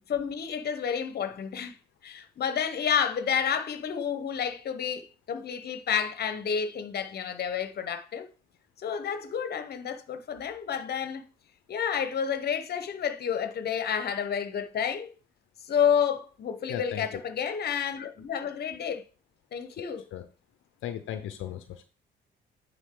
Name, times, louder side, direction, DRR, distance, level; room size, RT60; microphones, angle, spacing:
voice 1, 0.1-1.8 2.0-8.3 8.8-11.3 11.7-15.1 15.7-19.0 19.5-20.0, left 7 dB, 55° left, 0.9 m, -30 dB
voice 2, 16.7-17.2 19.8-19.9 20.1-20.2 20.8-21.8, left 10 dB, 80° left, 0.6 m, -36 dB
9.1 x 3.7 x 3.7 m
cardioid pair, 90°, 20 cm